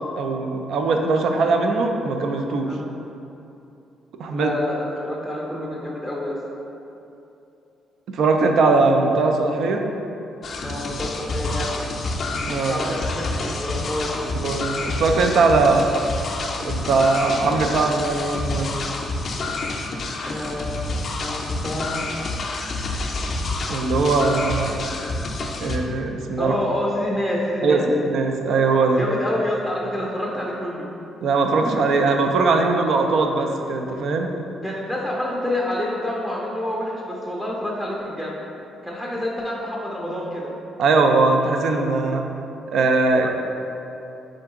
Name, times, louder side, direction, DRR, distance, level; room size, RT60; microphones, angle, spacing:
voice 1, 0.2-2.7 4.2-4.5 8.1-9.8 12.5-12.9 14.2-15.9 16.6-18.7 23.7-24.8 25.6-26.6 27.6-29.0 31.2-34.3 40.8-42.2 42.7-43.3, right 3 dB, 70° right, 4 dB, 0.4 m, -20 dB
voice 2, 4.3-6.4 10.6-11.8 12.7-14.1 20.3-22.0 26.4-27.9 29.0-30.9 34.6-38.4 38.8-40.5 43.2-43.3, left 1 dB, 5° right, -4 dB, 0.5 m, -28 dB
sound 1, 10.4-25.8, left 2 dB, 50° left, 0.4 m, -28 dB
3.8 x 3.4 x 3.6 m, 2.8 s
cardioid pair, 90°, 0 cm